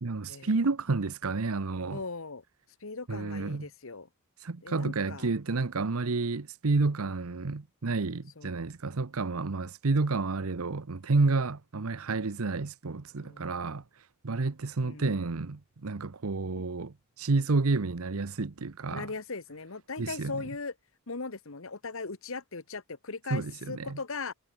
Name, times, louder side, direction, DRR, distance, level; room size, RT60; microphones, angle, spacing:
voice 1, 0.0-2.0 3.1-3.7 4.4-13.8 14.2-19.1 20.0-20.4 23.3-24.0, right 3 dB, 75° right, 0.9 m, -30 dB
voice 2, 1.9-2.4 2.8-4.1 4.6-5.3 8.4-8.7 13.2-13.5 14.8-15.2 16.4-16.7 18.9-20.7 21.1-24.3, left 4 dB, 65° left, 1.3 m, -39 dB
head